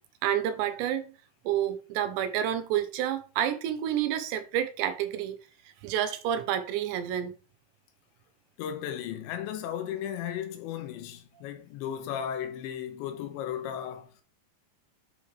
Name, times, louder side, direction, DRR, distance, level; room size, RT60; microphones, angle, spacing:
voice 1, 0.2-1.1 1.5-5.4 5.8-7.3, right 10 dB, 80° right, 3.0 m, -29 dB
voice 2, 8.6-14.1, left 9 dB, 85° left, 3.3 m, -35 dB
7.8 x 6.3 x 3.3 m
omnidirectional pair, 5.2 m